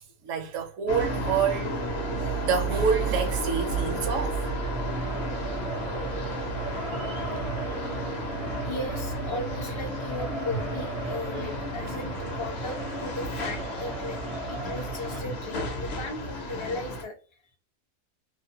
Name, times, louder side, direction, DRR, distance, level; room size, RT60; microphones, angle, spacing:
voice 1, 0.0-1.7 2.2-4.4, right 6 dB, 70° right, 0.9 m, -28 dB
sound 1, 0.9-17.0, right 1 dB, 60° left, 0.8 m, -32 dB
sound 2, 3.1-15.2, right 4 dB, 45° right, 0.5 m, -39 dB
voice 2, 5.9-6.3 6.6-7.1 7.7-8.4 8.6-14.2 14.5-17.2, left 2 dB, 40° left, 0.4 m, -37 dB
2.5 x 2.1 x 2.7 m
omnidirectional pair, 1.5 m